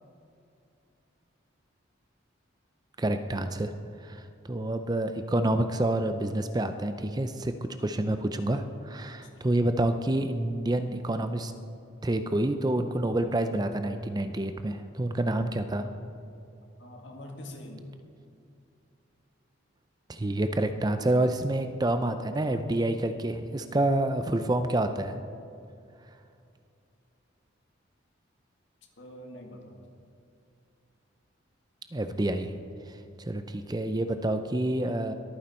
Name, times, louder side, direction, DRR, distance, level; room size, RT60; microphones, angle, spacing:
voice 1, 3.0-3.7 4.0-7.5 7.8-11.5 12.0-15.9 20.1-25.2 31.9-32.5 32.9-35.1, right 1 dB, 20° right, 9 dB, 0.5 m, -28 dB
voice 2, 16.8-17.9 29.0-29.8, left 1 dB, 65° left, 2 dB, 1.9 m, -44 dB
22.0 x 9.4 x 4.4 m, 2.5 s
head